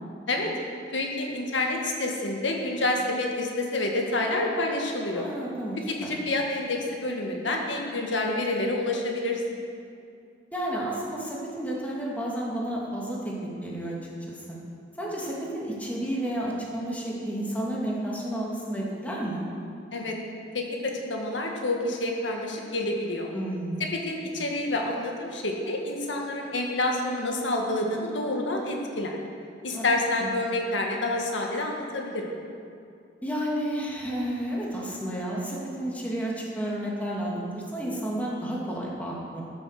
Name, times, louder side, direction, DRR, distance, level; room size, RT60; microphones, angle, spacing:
voice 1, 0.9-5.3 5.9-9.4 19.9-20.1 20.5-23.3 23.9-29.2 29.6-32.3, left 2 dB, 85° left, 0 dB, 1.7 m, -28 dB
voice 2, 5.1-6.1 10.5-13.3 13.6-13.9 14.3-14.6 15.0-19.4 23.3-23.9 29.7-29.8 30.2-30.3 33.2-39.4, right 1 dB, 10° left, -4 dB, 2.4 m, -31 dB
14.0 x 7.8 x 6.6 m, 2.5 s
head